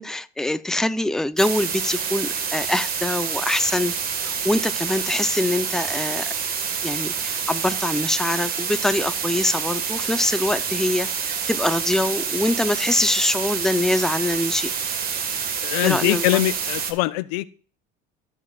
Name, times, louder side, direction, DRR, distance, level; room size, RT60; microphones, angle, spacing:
voice 1, 0.0-3.9 4.2-6.3 6.8-14.7 15.8-16.4, left 1 dB, ahead, 0.5 m, -24 dB
sound 1, 1.4-16.9, right 6 dB, 50° right, 1.6 m, -27 dB
voice 2, 15.6-17.4, left 18 dB, 85° left, 0.5 m, -22 dB
16.0 x 6.5 x 2.4 m
supercardioid pair, 95°, 19 cm